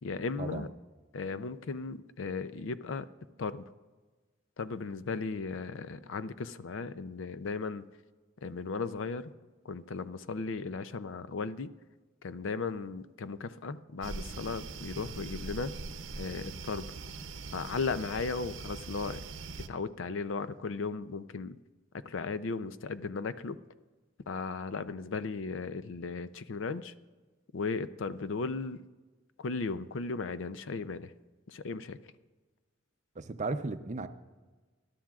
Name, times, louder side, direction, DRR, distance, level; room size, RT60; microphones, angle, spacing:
voice 1, 0.0-0.7 1.1-3.1 3.4-3.7 4.6-7.8 8.4-9.3 9.6-11.7 12.2-15.7 16.2-16.9 17.5-19.2 19.7-21.6 22.1-23.6 24.3-26.9 27.5-28.8 29.4-31.1 31.5-32.0, left 4 dB, 80° left, 14 dB, 0.5 m, -36 dB
sound 1, 14.0-19.7, right 3 dB, 80° right, 0.7 m, -42 dB
voice 2, 33.2-34.1, right 3 dB, 40° right, 10 dB, 0.6 m, -35 dB
20.5 x 11.5 x 2.4 m, 1.3 s
head